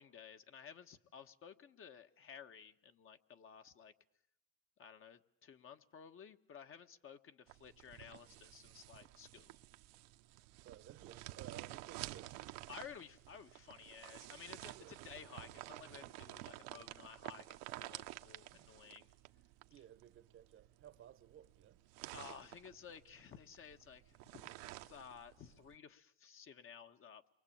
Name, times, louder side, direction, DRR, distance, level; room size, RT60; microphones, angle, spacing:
voice 1, 0.0-3.9 4.8-9.6 12.7-19.1 22.1-27.4, left 7 dB, 40° left, 1.6 m, -55 dB
sound 1, 7.5-25.8, right 18 dB, 75° right, 1.3 m, -52 dB
voice 2, 10.6-12.4 14.7-15.2 18.5-18.7 19.7-21.8, right 11 dB, 40° right, 1.2 m, -57 dB
28.5 x 23.5 x 8.9 m
supercardioid pair, 110°, 33 cm